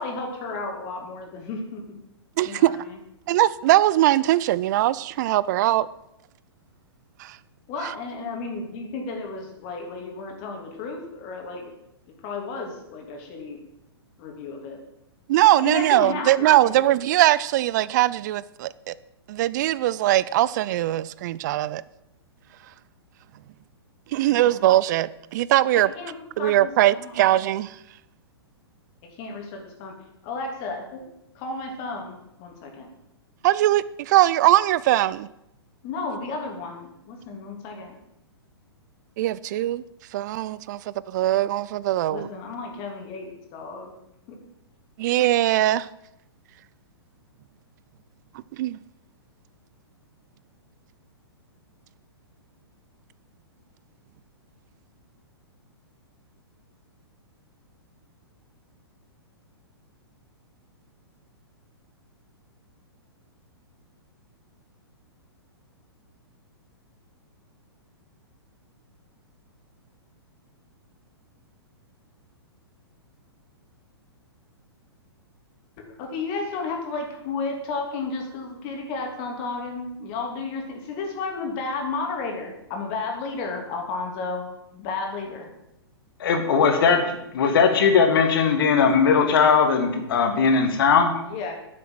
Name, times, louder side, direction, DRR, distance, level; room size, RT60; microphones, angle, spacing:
voice 1, 0.0-2.0 2.4-3.0 7.7-11.7 12.2-13.6 14.2-14.8 15.6-16.8 24.3-24.5 25.9-27.1 29.2-29.9 30.2-31.0 31.3-32.9 35.8-37.9 42.1-43.9 44.3-44.4 75.9-84.4 84.7-85.5 91.3-91.5, left 3 dB, 40° left, 3.0 m, -33 dB
voice 2, 2.4-2.8 3.3-5.9 7.2-7.4 7.8-7.9 15.3-18.9 19.3-21.8 24.1-25.9 26.4-27.7 33.4-35.3 39.2-39.8 40.1-42.3 45.0-45.9 48.6-48.8, right 14 dB, 45° right, 0.4 m, -21 dB
voice 3, 86.2-91.1, left 5 dB, 60° left, 2.3 m, -19 dB
10.0 x 7.6 x 7.5 m
figure-of-eight pair, 115°, 14 cm